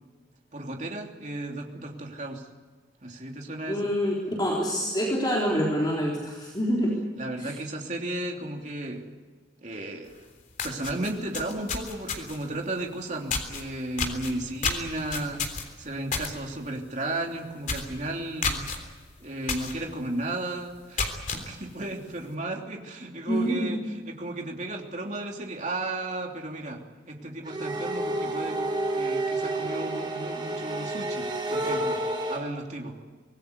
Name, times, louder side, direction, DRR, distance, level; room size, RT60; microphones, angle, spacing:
voice 1, 0.5-2.4 3.0-3.8 7.2-9.0 9.6-10.1 10.6-15.5 15.8-18.6 19.2-23.8 24.0-26.8 27.1-32.0 32.3-33.0, right 2 dB, 40° right, 1 dB, 3.1 m, -34 dB
voice 2, 3.7-6.9 7.4-7.5 23.3-23.7, equal, 20° left, -3 dB, 3.8 m, -26 dB
sound 1, 10.1-10.2 10.5-12.5 13.3-13.6 14.0-16.3 16.7-16.9 17.2-17.3 17.6-17.9 18.4-18.8 19.5-19.7 20.2-20.3 20.8-21.4, left 4 dB, 40° left, 3.5 m, -30 dB
sound 2, 27.5-32.4, right 2 dB, 25° right, 4.6 m, -30 dB
25.0 x 20.0 x 8.2 m, 1.4 s
head